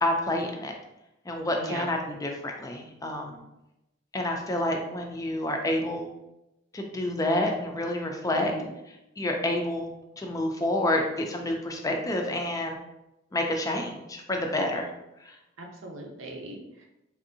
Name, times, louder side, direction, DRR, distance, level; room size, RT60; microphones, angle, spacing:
voice 1, 0.0-0.7 1.3-3.4 4.1-6.1 6.7-8.5 9.2-12.8 13.3-14.9, left 1 dB, 20° left, 2 dB, 0.4 m, -28 dB
voice 2, 1.6-1.9 8.4-8.7 15.6-16.8, right 2 dB, 85° right, 1 dB, 0.7 m, -39 dB
3.3 x 2.6 x 2.6 m, 0.91 s
head